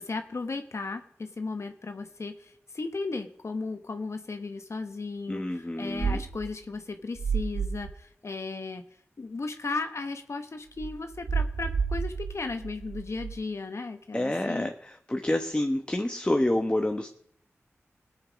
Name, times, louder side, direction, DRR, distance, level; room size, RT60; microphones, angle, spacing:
voice 1, 0.0-8.8 9.2-14.7, left 3 dB, 65° left, 7 dB, 1.1 m, -35 dB
voice 2, 5.3-6.2 14.1-17.1, left 1 dB, 20° left, 5 dB, 1.1 m, -28 dB
sound 1, 6.0-6.5 7.1-7.9 10.8-13.3, right 5 dB, 85° right, 0.9 m, -30 dB
18.0 x 7.1 x 5.2 m, 0.64 s
cardioid pair, 45°, 5 cm